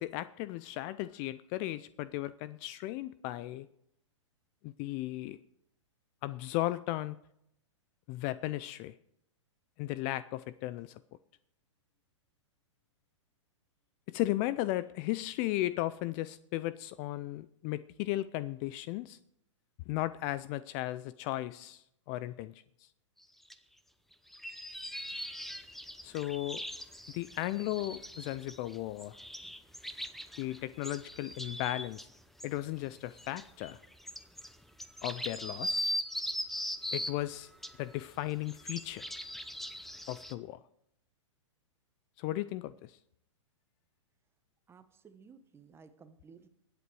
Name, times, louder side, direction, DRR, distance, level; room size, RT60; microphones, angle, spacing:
voice 1, 0.0-3.7 4.6-5.4 6.2-7.2 8.1-8.9 9.8-11.0 14.1-19.2 19.9-22.9 26.0-26.6 27.1-29.2 30.4-32.1 32.4-33.8 35.0-35.9 36.9-37.5 37.8-39.0 40.1-40.6 42.2-43.0, left 16 dB, 35° left, 17 dB, 0.4 m, -36 dB
sound 1, 23.5-23.6 24.1-32.1 32.4-32.5 33.0-37.2 37.6-40.3, equal, ahead, 0.7 m, -40 dB
voice 2, 44.7-46.5, right 5 dB, 15° right, 10 dB, 1.1 m, -56 dB
21.5 x 8.3 x 4.7 m, 0.77 s
hypercardioid pair, 120°, 16 cm